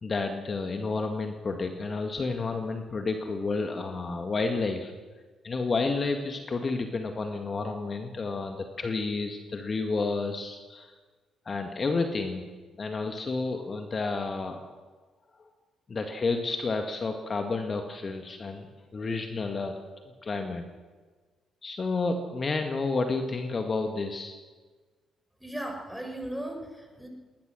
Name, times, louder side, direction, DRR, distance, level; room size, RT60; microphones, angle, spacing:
voice 1, 0.0-4.9 5.4-10.9 11.5-12.4 12.8-14.9 15.3-15.5 15.9-18.7 18.9-20.6 21.6-24.3, left 3 dB, 40° left, 5 dB, 2.0 m, -30 dB
voice 2, 25.4-27.1, right 1 dB, 5° right, 2 dB, 6.2 m, -37 dB
20.5 x 20.5 x 6.5 m, 1.4 s
figure-of-eight pair, 40°, 0 cm